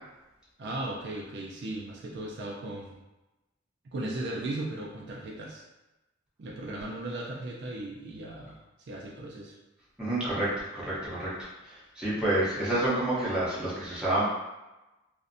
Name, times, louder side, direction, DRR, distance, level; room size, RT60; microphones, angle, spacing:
voice 1, 0.6-3.0 3.9-5.6 6.4-8.6 8.9-9.5, right 2 dB, 60° right, -3 dB, 0.4 m, -37 dB
voice 2, 10.0-14.3, right 1 dB, 5° right, -10 dB, 0.8 m, -29 dB
2.5 x 2.0 x 2.5 m, 1.0 s
head